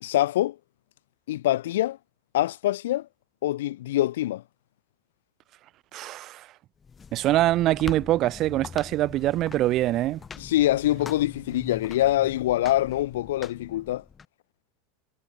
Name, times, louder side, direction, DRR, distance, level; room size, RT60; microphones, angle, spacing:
voice 1, 0.0-0.6 1.3-2.0 2.3-3.1 3.4-4.4 10.4-14.0, left 14 dB, 85° left, 0.3 m, -24 dB
voice 2, 5.9-6.4 7.1-10.2, right 15 dB, 45° right, 0.4 m, -24 dB
sound 1, 6.8-14.2, left 6 dB, 20° left, 1.7 m, -42 dB
supercardioid pair, 120°, 0 cm